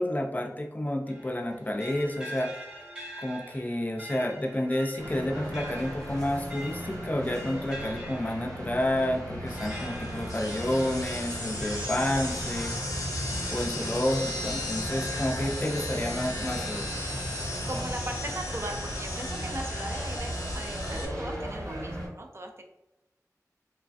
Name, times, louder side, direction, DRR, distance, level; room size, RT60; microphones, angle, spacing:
voice 1, 0.0-2.7 3.2-12.7 13.5-16.9, left 1 dB, 25° left, 3 dB, 0.4 m, -30 dB
sound 1, 1.1-12.7 13.2-14.2, equal, 15° right, 1.0 m, -45 dB
sound 2, 5.0-22.1, equal, 75° right, 1.1 m, -36 dB
sound 3, 9.5-21.1, left 1 dB, 75° left, 0.7 m, -37 dB
voice 2, 17.7-22.6, right 1 dB, 45° right, 2 dB, 0.4 m, -38 dB
3.1 x 2.4 x 2.4 m, 0.96 s
wide cardioid pair, 45°, 6 cm